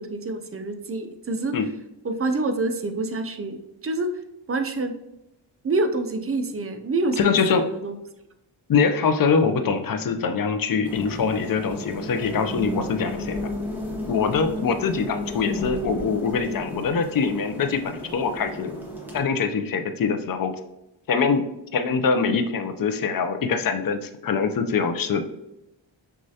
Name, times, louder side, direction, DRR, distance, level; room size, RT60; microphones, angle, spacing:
voice 1, 0.0-1.5 2.0-3.6 3.8-4.1 4.5-5.0 5.6-7.9, right 2 dB, 30° right, 7 dB, 0.4 m, -27 dB
voice 2, 7.2-7.7 8.7-13.4 14.1-18.7 19.1-20.5 21.1-21.4 21.7-25.3, left 5 dB, 45° left, 8 dB, 0.5 m, -23 dB
sound 1, 10.8-19.2, left 1 dB, 5° right, 1.0 m, -33 dB
6.2 x 2.4 x 2.7 m, 0.87 s
wide cardioid pair, 95°, 48 cm